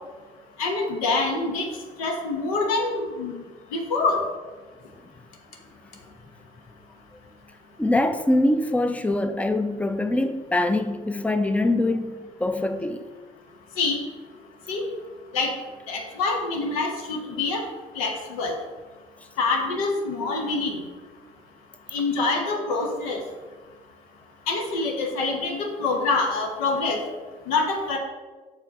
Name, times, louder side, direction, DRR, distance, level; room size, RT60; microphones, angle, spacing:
voice 1, 0.6-1.7 2.0-3.4 3.7-4.2 13.8-14.0 14.7-14.8 15.3-15.5 15.9-17.6 18.0-18.5 19.4-20.8 21.9-23.2 24.5-27.0 27.5-28.0, left 3 dB, 80° left, 0.9 m, -25 dB
voice 2, 7.8-13.0, left 1 dB, 10° left, 0.5 m, -23 dB
6.0 x 4.5 x 3.5 m
hypercardioid pair, 55°, 18 cm